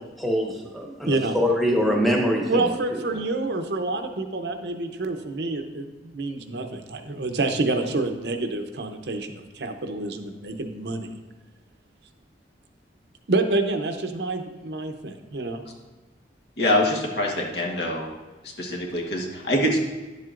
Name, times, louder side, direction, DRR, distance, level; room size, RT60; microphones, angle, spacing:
voice 1, 0.2-3.0, equal, ahead, -1 dB, 1.1 m, -24 dB
voice 2, 1.0-1.3 2.5-11.1 13.3-15.6, right 2 dB, 65° right, 6 dB, 0.7 m, -28 dB
voice 3, 16.6-18.1 18.4-19.8, left 1 dB, 65° left, 0 dB, 1.3 m, -24 dB
10.5 x 7.5 x 2.5 m, 1.2 s
head